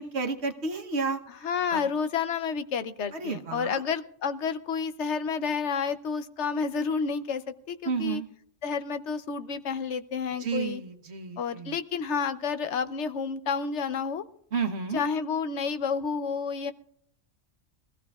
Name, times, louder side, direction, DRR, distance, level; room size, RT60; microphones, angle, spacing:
voice 1, 0.0-1.2 1.7-1.8 3.1-3.8 7.8-8.3 10.4-11.7 14.5-15.0, right 5 dB, 65° right, 5 dB, 1.3 m, -31 dB
voice 2, 1.3-8.2 8.6-10.8 11.4-14.2 14.9-16.7, left 5 dB, 70° left, 11 dB, 1.0 m, -30 dB
23.0 x 15.0 x 2.4 m, 0.68 s
omnidirectional pair, 1.3 m